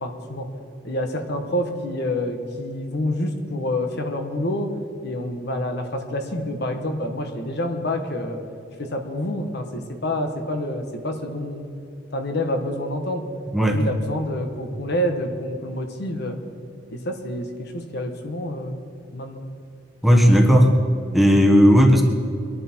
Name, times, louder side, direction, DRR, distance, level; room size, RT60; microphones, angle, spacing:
voice 1, 0.0-0.5 0.8-4.7 5.0-8.4 8.8-11.6 12.1-13.2 13.7-16.4 16.9-18.8 19.1-19.4, left 1 dB, 60° left, 5 dB, 1.4 m, -27 dB
voice 2, 20.0-20.7 21.1-22.0, equal, ahead, 1 dB, 1.3 m, -14 dB
23.0 x 11.0 x 4.5 m, 2.5 s
head